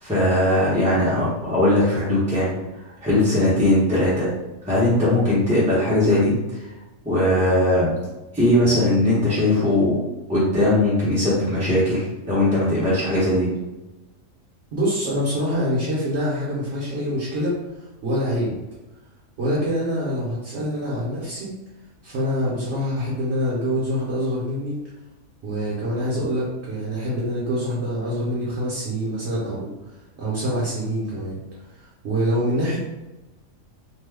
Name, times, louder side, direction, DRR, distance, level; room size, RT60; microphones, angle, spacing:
voice 1, 0.0-2.5 3.0-4.3 4.7-6.3 7.0-7.9 8.3-10.0 10.3-13.5, left 1 dB, 5° right, -10 dB, 0.6 m, -19 dB
voice 2, 14.7-18.6 19.4-21.5 22.0-24.8 25.4-29.7 30.2-31.4 31.7-32.8, equal, 60° right, -7 dB, 1.0 m, -25 dB
2.9 x 2.2 x 3.4 m, 1.0 s
omnidirectional pair, 1.4 m